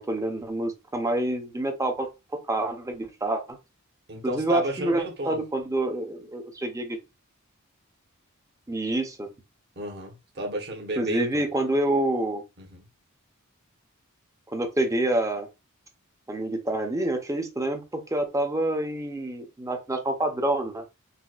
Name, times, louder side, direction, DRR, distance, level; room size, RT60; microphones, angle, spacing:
voice 1, 0.0-2.1 2.5-3.6 4.2-7.0 8.7-9.3 11.0-12.4 14.5-15.5 16.3-17.8 18.1-20.9, right 1 dB, 15° right, 0.6 m, -27 dB
voice 2, 4.1-5.4 9.8-11.4 12.6-12.8, right 1 dB, 50° right, 1.0 m, -33 dB
4.0 x 2.3 x 2.3 m
head